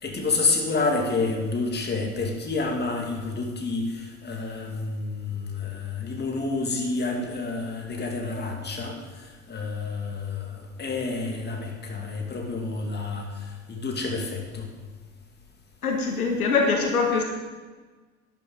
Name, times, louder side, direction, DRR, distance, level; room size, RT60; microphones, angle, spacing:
voice 1, 0.0-9.0 9.5-13.3 13.7-14.7, left 3 dB, 25° left, 1 dB, 2.3 m, -29 dB
voice 2, 15.8-17.2, left 4 dB, 75° left, 2 dB, 1.4 m, -23 dB
12.0 x 10.5 x 3.9 m, 1.4 s
figure-of-eight pair, 65°, 44 cm